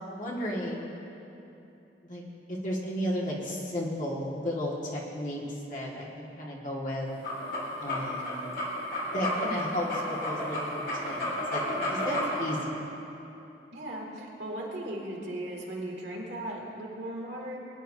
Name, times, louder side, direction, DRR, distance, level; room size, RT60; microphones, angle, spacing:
voice 1, 0.1-1.0 2.0-2.2 2.5-7.1 7.8-8.5 9.0-12.7, equal, 50° left, -4 dB, 2.0 m, -34 dB
sound 1, 7.1-12.6, left 1 dB, 65° left, 2.8 m, -32 dB
voice 2, 13.7-17.6, right 1 dB, 75° right, -3 dB, 2.5 m, -37 dB
20.5 x 10.5 x 2.8 m, 2.9 s
head